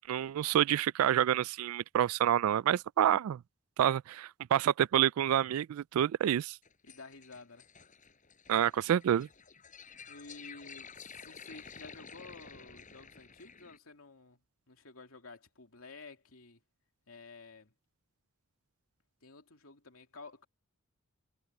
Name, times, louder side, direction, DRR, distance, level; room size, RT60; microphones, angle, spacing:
voice 1, 0.1-3.4 3.8-6.6 8.5-9.3, right 10 dB, 90° right, 0.3 m, -28 dB
sound 1, 6.6-13.8, left 6 dB, 40° left, 6.5 m, -52 dB
voice 2, 6.8-7.7 10.1-14.4 14.7-16.6 17.1-17.7 19.2-20.5, left 3 dB, 80° left, 2.8 m, -52 dB
head